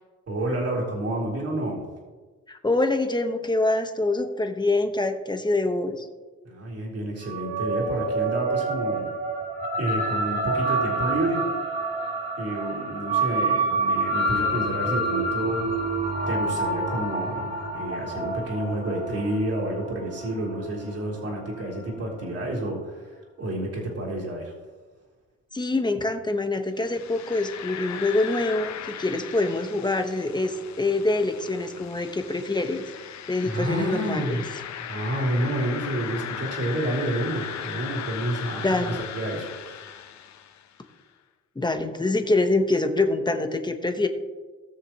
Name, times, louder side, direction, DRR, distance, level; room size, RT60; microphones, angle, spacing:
voice 1, 0.3-1.8 6.4-9.1 9.8-11.4 12.4-15.7 16.3-24.5 33.4-34.4 34.9-39.8, right 1 dB, 55° right, -3 dB, 3.7 m, -29 dB
voice 2, 2.5-6.1 25.5-32.8 33.3-34.4 38.6-39.0 41.5-44.1, left 2 dB, 15° left, 6 dB, 1.2 m, -25 dB
sound 1, 7.2-21.9, right 2 dB, 30° right, 2.2 m, -28 dB
sound 2, 26.8-40.8, left 9 dB, 65° left, 0.8 m, -37 dB
19.0 x 6.7 x 3.0 m, 1.3 s
cardioid pair, 90°, 30 cm